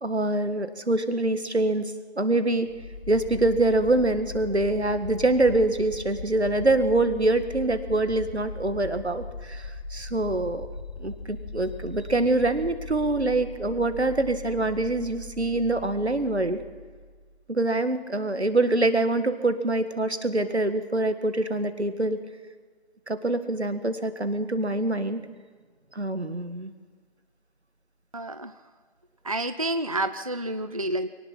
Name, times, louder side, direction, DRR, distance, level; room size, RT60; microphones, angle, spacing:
voice 1, 0.0-2.7 3.1-10.7 11.0-16.6 17.5-22.2 23.1-25.2 26.0-26.7, right 2 dB, 85° right, 9 dB, 1.8 m, -25 dB
sound 1, 2.7-17.5, left 3 dB, 70° left, 1.3 m, -39 dB
voice 2, 28.1-28.5 29.2-31.1, right 1 dB, 35° right, 10 dB, 0.5 m, -29 dB
24.0 x 18.5 x 5.9 m, 1.5 s
figure-of-eight pair, 160°, 32 cm